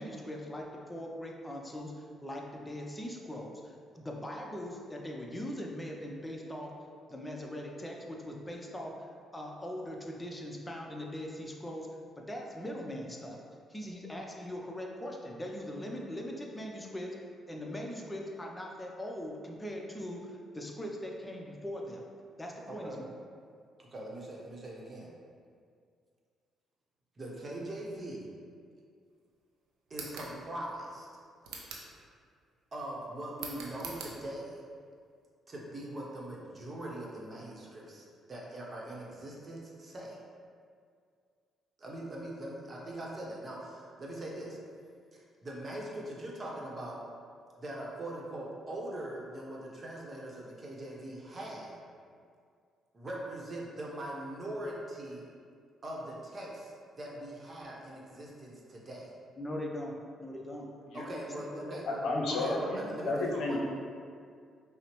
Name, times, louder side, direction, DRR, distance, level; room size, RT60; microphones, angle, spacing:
voice 1, 0.0-6.7 7.1-8.9 9.3-11.9 12.2-13.4 13.7-17.1 17.5-22.0 22.4-23.0 59.4-60.7 61.5-62.1, equal, 15° left, 0 dB, 0.6 m, -41 dB
voice 2, 22.7-23.0 23.8-25.1 27.2-28.3 29.9-31.1 32.7-34.6 35.5-40.2 41.8-44.6 45.1-47.0 47.6-51.8 52.9-55.3 55.8-59.1 60.9-62.0 62.3-63.6, right 1 dB, 40° right, -3 dB, 0.9 m, -41 dB
sound 1, 29.9-30.3 31.4-31.9 33.4-34.1, right 4 dB, 80° right, 0.5 m, -43 dB
voice 3, 61.9-62.8 63.0-63.6, left 2 dB, 75° left, -2 dB, 0.6 m, -31 dB
5.5 x 2.1 x 3.0 m, 2.2 s
supercardioid pair, 60°, 0 cm